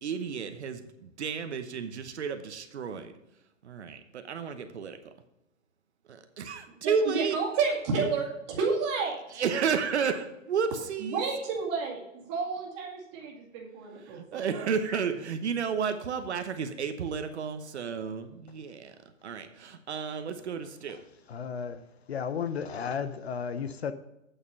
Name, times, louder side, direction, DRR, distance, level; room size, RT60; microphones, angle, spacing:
voice 1, 0.0-3.1 3.6-5.1 6.1-7.4 9.3-11.3 14.1-18.9 19.2-21.0, right 6 dB, 55° right, 1.0 m, -32 dB
voice 2, 6.8-9.2 11.0-14.9, right 4 dB, 20° right, 2.0 m, -31 dB
voice 3, 21.3-21.8 22.1-23.9, left 6 dB, 55° left, 0.7 m, -33 dB
8.9 x 6.8 x 5.3 m
hypercardioid pair, 165°, 39 cm